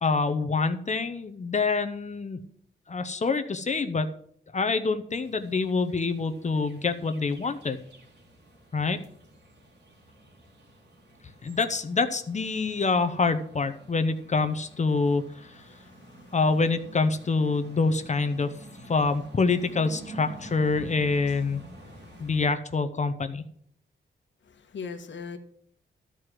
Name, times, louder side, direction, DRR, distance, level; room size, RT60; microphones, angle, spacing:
voice 1, 0.0-2.4 2.9-4.1 4.5-7.8 8.7-9.0 11.4-15.2 16.3-18.5 18.9-21.6 22.2-23.4, left 4 dB, 35° left, 9 dB, 0.8 m, -26 dB
sound 1, 5.1-22.5, right 1 dB, 60° right, 2.8 m, -49 dB
voice 2, 15.7-16.3 21.9-22.2 24.5-25.4, left 5 dB, 75° left, 7 dB, 1.4 m, -41 dB
13.0 x 4.8 x 7.6 m, 0.63 s
wide cardioid pair, 110°, 20 cm